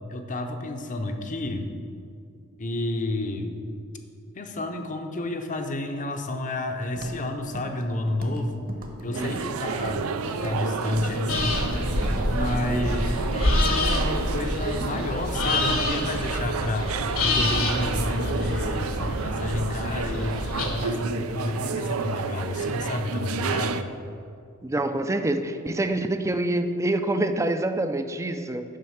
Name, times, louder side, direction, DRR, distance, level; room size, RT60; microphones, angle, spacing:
voice 1, 0.1-1.7 2.6-3.6 4.3-8.7 9.0-11.7 12.2-16.9 17.2-23.9, left 1 dB, 40° left, 6 dB, 0.7 m, -30 dB
Walk footsteps, 7.0-7.3 7.5-7.8 8.1-8.4 8.7-9.5 9.8-10.1 10.4-10.7 10.9-11.1 11.4-11.7 12.0-12.1, right 1 dB, 45° right, 1.1 m, -39 dB
sound 1, 9.1-23.8, right 5 dB, 85° right, 0.4 m, -31 dB
sound 2, 11.3-20.6, left 1 dB, 70° left, 1.5 m, -27 dB
voice 2, 24.6-28.6, right 1 dB, 15° right, 9 dB, 0.4 m, -26 dB
7.6 x 5.6 x 7.1 m, 2.4 s
head